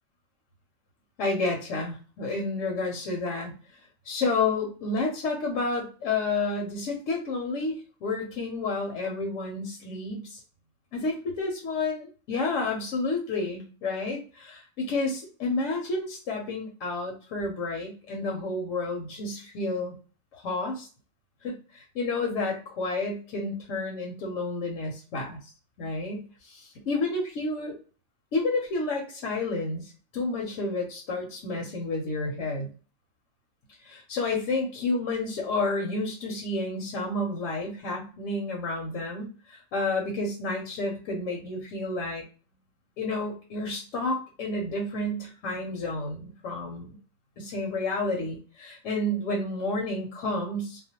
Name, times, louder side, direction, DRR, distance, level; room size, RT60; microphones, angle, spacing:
voice 1, 1.2-3.5 4.0-10.4 10.9-19.9 20.3-20.9 21.4-25.5 25.8-27.8 28.3-32.7 33.8-42.2 43.0-47.0 47.4-50.8, left 2 dB, 80° left, 0 dB, 1.0 m, -30 dB
2.4 x 2.1 x 2.7 m, 0.38 s
omnidirectional pair, 1.3 m